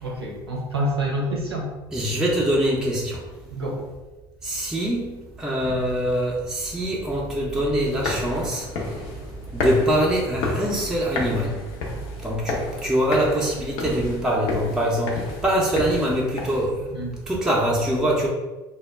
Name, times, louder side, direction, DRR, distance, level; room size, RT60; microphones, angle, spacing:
voice 1, 0.0-1.7 3.5-3.8 16.9-17.2, right 1 dB, 90° right, -1 dB, 0.6 m, -27 dB
voice 2, 1.9-3.2 4.4-8.6 9.5-11.6 12.2-16.7 17.3-18.3, right 1 dB, 5° right, -4 dB, 0.6 m, -23 dB
sound 1, 7.9-16.6, left 2 dB, 60° left, 0.6 m, -31 dB
2.2 x 2.1 x 3.3 m, 1.1 s
hypercardioid pair, 65°, 13 cm